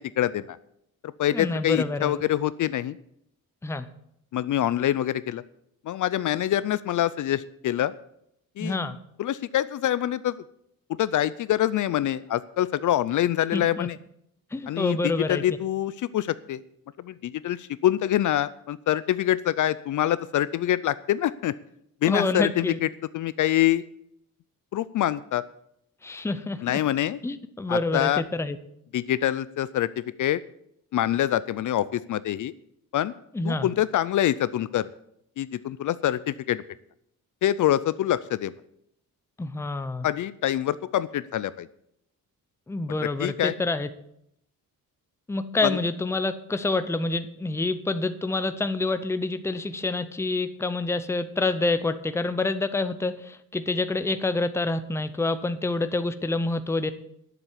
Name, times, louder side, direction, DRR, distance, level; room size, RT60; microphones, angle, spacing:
voice 1, 0.2-0.6 1.2-3.0 4.3-5.4 5.9-7.9 8.6-8.8 9.2-10.4 10.9-14.0 14.7-16.6 17.0-21.5 22.0-22.9 23.1-23.8 24.7-25.4 26.6-27.2 27.7-28.2 28.9-30.4 30.9-32.5 32.9-33.1 33.4-34.9 35.4-36.6 37.4-38.5 40.0-41.7 43.2-43.5 45.6-45.8, left 12 dB, 55° left, 16 dB, 0.5 m, -25 dB
voice 2, 1.3-2.2 3.6-3.9 8.6-9.0 13.5-13.9 14.5-15.4 22.0-22.8 26.0-26.8 27.2-28.6 33.3-33.7 39.4-40.1 42.7-43.9 45.3-56.9, left 2 dB, 5° left, 10 dB, 0.6 m, -27 dB
11.0 x 7.4 x 8.1 m, 0.74 s
wide cardioid pair, 170°, 36 cm